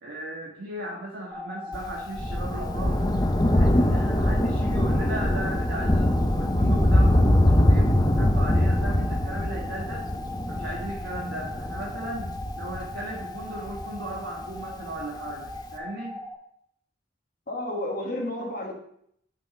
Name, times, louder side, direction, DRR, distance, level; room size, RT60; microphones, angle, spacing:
voice 1, 0.0-3.2 3.5-10.0 10.5-12.3 12.6-16.2, right 1 dB, 85° right, -3 dB, 1.4 m, -36 dB
sound 1, 1.3-16.3, left 2 dB, 10° right, 1.8 m, -39 dB
Thunder, 1.7-14.6 15.5-15.6, left 1 dB, 20° left, 0.6 m, -23 dB
voice 2, 17.5-18.7, left 1 dB, 50° left, 0 dB, 1.2 m, -31 dB
6.0 x 5.8 x 5.1 m, 0.69 s
head